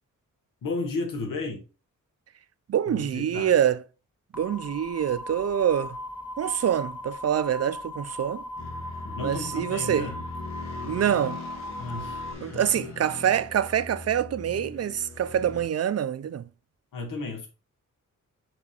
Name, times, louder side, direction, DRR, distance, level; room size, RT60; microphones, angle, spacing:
voice 1, 0.6-1.6 2.8-3.5 9.0-10.2 11.8-12.2 12.5-12.9 16.9-17.5, left 3 dB, 80° left, 1.6 m, -33 dB
voice 2, 2.7-3.8 4.3-6.0 6.4-8.4 9.2-10.1 10.8-11.4 12.4-16.5, right 9 dB, 50° right, 0.5 m, -25 dB
sound 1, 4.3-12.3, left 1 dB, 5° right, 0.5 m, -38 dB
sound 2, 8.6-15.7, left 3 dB, 55° left, 2.3 m, -40 dB
6.3 x 3.5 x 4.3 m
cardioid pair, 90°, 32 cm